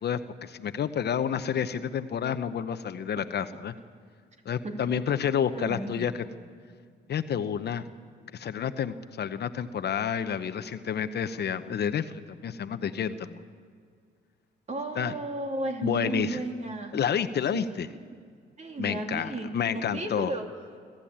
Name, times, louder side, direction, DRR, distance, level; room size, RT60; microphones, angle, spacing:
voice 1, 0.0-3.7 4.4-6.2 7.1-7.9 8.3-13.4 15.0-15.1 15.8-16.4 16.9-17.9 18.8-20.3, left 8 dB, 55° left, 11 dB, 1.0 m, -29 dB
voice 2, 5.5-6.1 14.7-17.0 17.5-17.6 18.6-20.4, right 2 dB, 35° right, 3 dB, 3.0 m, -34 dB
26.0 x 13.5 x 8.9 m, 2.1 s
cardioid pair, 90°, 20 cm